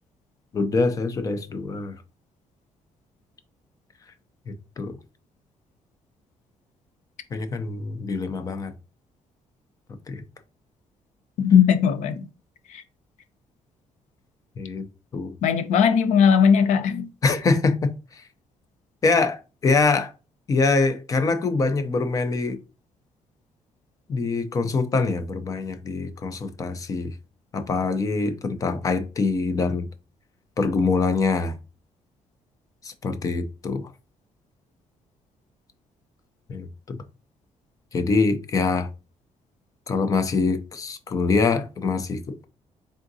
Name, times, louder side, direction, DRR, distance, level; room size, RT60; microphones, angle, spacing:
voice 1, 0.5-1.9 4.5-4.9 7.3-8.7 10.1-10.2 14.6-14.8 15.1-15.3 17.2-18.2 19.0-20.1 20.5-22.6 24.1-27.1 27.5-29.9 30.6-31.5 32.8-33.9 36.5-37.0 37.9-38.9 39.9-42.5, left 4 dB, 30° left, 0.5 m, -24 dB
voice 2, 11.4-12.2 12.7-12.8 15.4-17.1, left 7 dB, 80° left, 0.6 m, -18 dB
3.7 x 3.6 x 2.6 m
cardioid pair, 175°, 12 cm